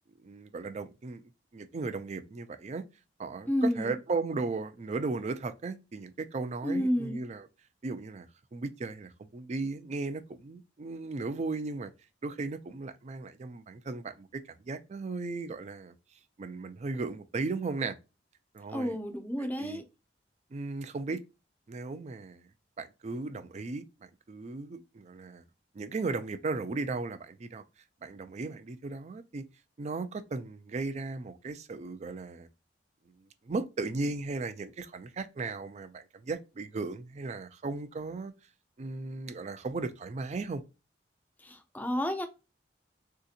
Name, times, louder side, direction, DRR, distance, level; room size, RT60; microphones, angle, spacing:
voice 1, 0.2-2.8 3.2-7.5 7.8-8.3 8.5-11.9 12.2-15.9 16.4-18.0 18.5-19.0 19.4-19.8 20.5-21.2 21.7-22.5 22.8-25.4 25.7-27.6 28.0-29.4 29.8-32.5 33.2-38.3 38.8-40.6, right 3 dB, 40° right, 0.4 m, -36 dB
voice 2, 3.5-3.9 6.6-7.2 18.7-19.8 41.4-42.3, equal, 10° left, 0.5 m, -30 dB
3.6 x 2.8 x 2.4 m
head